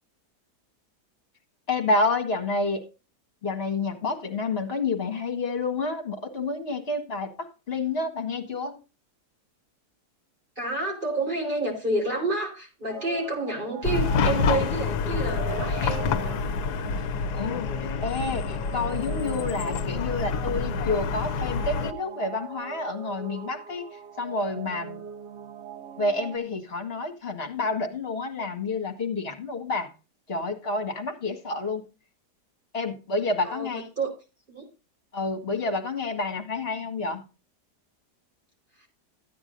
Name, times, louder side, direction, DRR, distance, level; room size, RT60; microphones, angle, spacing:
voice 1, 1.7-2.8 3.4-8.8 17.0-17.1 17.3-25.0 26.0-29.9 30.3-31.8 32.7-33.9 35.1-37.2, left 3 dB, 35° left, 5 dB, 1.9 m, -29 dB
voice 2, 10.6-16.5 33.4-34.1 34.5-34.6 38.8-38.9, right 2 dB, 30° right, -1 dB, 4.5 m, -29 dB
sound 1, 12.9-26.4, right 8 dB, 60° right, 0.8 m, -41 dB
Chatter / Car passing by / Traffic noise roadway noise, 13.8-21.9, left 5 dB, 75° left, 1.2 m, -27 dB
14.0 x 9.5 x 2.6 m, 0.31 s
omnidirectional pair, 1.8 m